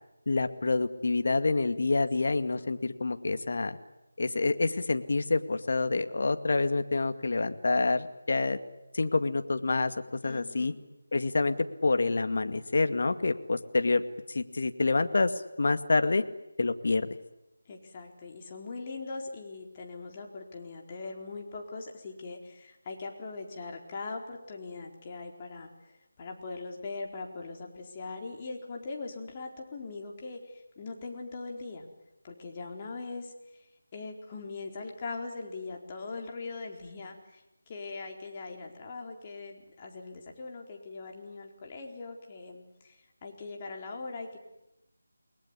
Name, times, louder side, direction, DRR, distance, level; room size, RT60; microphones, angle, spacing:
voice 1, 0.3-3.8 4.2-8.6 8.9-9.9 10.2-10.7 11.1-11.6 11.8-14.0 14.3-16.2 16.6-17.1, left 3 dB, 55° left, 9 dB, 2.1 m, -27 dB
voice 2, 10.2-10.8 17.7-31.9 32.2-33.7 33.9-44.4, left 3 dB, 25° left, 1 dB, 4.3 m, -41 dB
29.0 x 20.5 x 9.9 m, 0.92 s
figure-of-eight pair, 165°, 0 cm